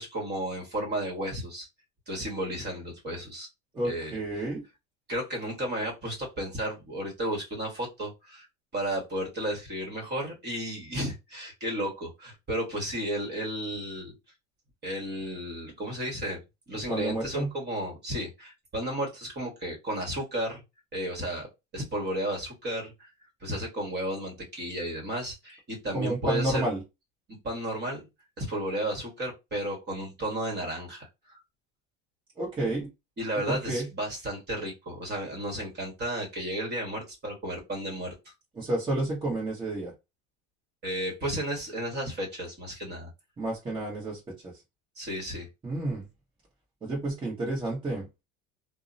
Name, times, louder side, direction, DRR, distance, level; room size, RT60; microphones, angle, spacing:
voice 1, 0.0-1.7 2.1-3.5 3.8-4.5 5.1-8.5 8.7-14.1 14.8-16.4 16.7-20.6 20.9-23.1 23.4-26.7 27.4-28.1 28.4-31.4 33.2-38.1 40.8-43.1 45.0-45.5, right 1 dB, 30° right, 0 dB, 1.3 m, -33 dB
voice 2, 3.7-4.6 16.9-17.5 25.9-26.8 32.4-32.9 33.5-33.9 38.6-39.9 43.4-44.5 45.6-46.0 46.8-48.1, right 2 dB, 15° right, -4 dB, 1.0 m, -30 dB
2.7 x 2.0 x 2.5 m, 0.24 s
supercardioid pair, 110°, 32 cm